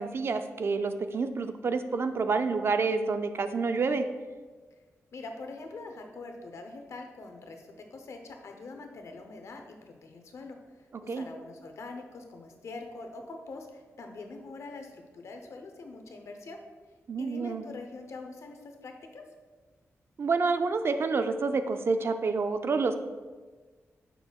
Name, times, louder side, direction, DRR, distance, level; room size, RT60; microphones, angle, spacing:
voice 1, 0.0-4.1 11.1-11.3 17.1-17.6 20.2-22.9, right 4 dB, 50° right, 9 dB, 0.4 m, -28 dB
voice 2, 5.1-16.6 17.2-19.3, left 3 dB, 70° left, 4 dB, 0.7 m, -44 dB
6.7 x 6.0 x 2.3 m, 1.4 s
wide cardioid pair, 105°, 5 cm